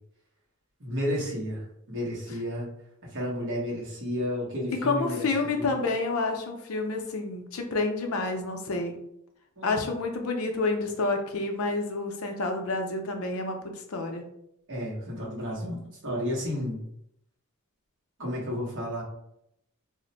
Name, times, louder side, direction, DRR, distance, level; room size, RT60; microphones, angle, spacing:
voice 1, 0.8-2.7 3.0-5.8 9.6-9.7 14.7-16.8 18.2-19.0, equal, 55° right, -3 dB, 1.1 m, -32 dB
voice 2, 4.7-9.0 9.6-14.2, left 3 dB, 70° left, 4 dB, 0.5 m, -29 dB
2.5 x 2.1 x 3.9 m, 0.76 s
head